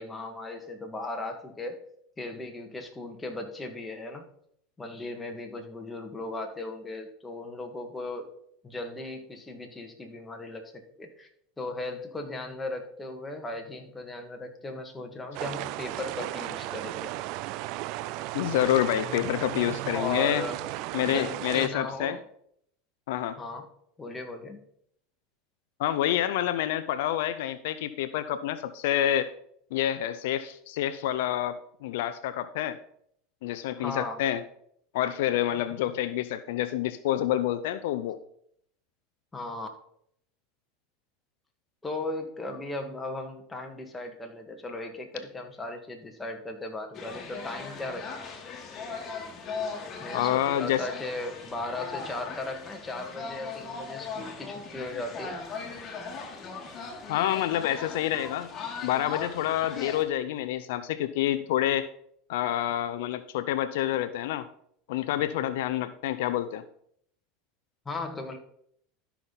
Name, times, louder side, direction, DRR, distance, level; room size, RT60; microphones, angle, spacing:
voice 1, 0.0-1.8 2.2-4.3 4.8-8.3 8.6-11.3 11.6-17.1 19.9-20.6 21.1-22.2 23.4-23.7 24.0-24.6 33.8-34.2 39.3-39.7 41.8-48.3 50.0-55.4 67.8-68.4, left 2 dB, 15° left, 3 dB, 1.8 m, -37 dB
sound 1, 15.3-21.7, right 16 dB, 60° right, 0.4 m, -35 dB
voice 2, 18.3-20.4 20.9-22.2 23.1-23.4 25.8-29.3 29.7-32.8 33.4-34.4 34.9-38.2 50.1-50.9 57.1-58.5 58.8-61.9 62.3-64.5 64.9-66.6, left 12 dB, 75° left, 12 dB, 0.5 m, -28 dB
sound 2, 46.9-60.0, left 4 dB, 35° left, 2.2 m, -39 dB
13.0 x 5.7 x 4.0 m, 0.69 s
supercardioid pair, 105°, 0 cm